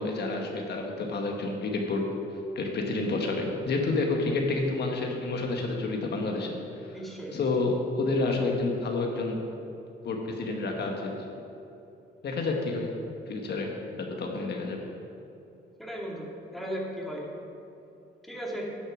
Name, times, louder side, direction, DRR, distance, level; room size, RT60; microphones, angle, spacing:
voice 1, 0.0-2.0 2.3-7.0 7.3-9.4 10.0-11.1 12.2-12.9 13.3-14.8, left 3 dB, 55° left, 1 dB, 1.2 m, -29 dB
voice 2, 6.9-7.4 15.8-17.2 18.2-18.7, equal, ahead, -3 dB, 2.2 m, -36 dB
9.8 x 6.4 x 6.0 m, 2.8 s
cardioid pair, 90°, 20 cm